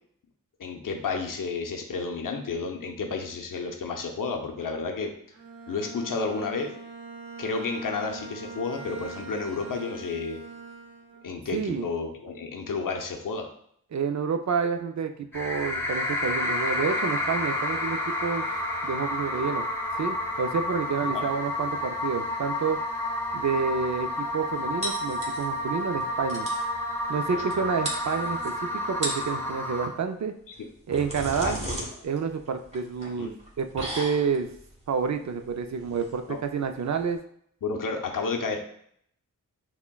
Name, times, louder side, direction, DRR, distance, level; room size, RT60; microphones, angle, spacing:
voice 1, 0.6-5.1 5.7-6.7 7.4-10.4 11.2-13.5 21.1-21.2 27.3-27.4 31.4-31.5 33.2-33.3 36.3-36.4 37.6-38.6, left 4 dB, 75° left, 3 dB, 0.6 m, -31 dB
Bowed string instrument, 5.3-11.4, right 4 dB, 85° right, 0.8 m, -42 dB
voice 2, 11.5-11.9 13.9-18.5 18.8-19.6 20.0-22.8 23.3-26.5 27.1-30.3 30.9-31.6 32.0-34.5 34.9-37.2, right 6 dB, 55° right, 6 dB, 0.4 m, -29 dB
sound 1, 15.3-29.9, left 1 dB, 5° left, 0.9 m, -30 dB
sound 2, 24.8-25.7 26.0-26.1 26.3-26.7 27.5-27.6 27.8-28.5 28.9-29.4 30.5-37.2, right 1 dB, 20° right, 1.3 m, -36 dB
5.8 x 2.2 x 2.2 m, 0.67 s
cardioid pair, 50°, 33 cm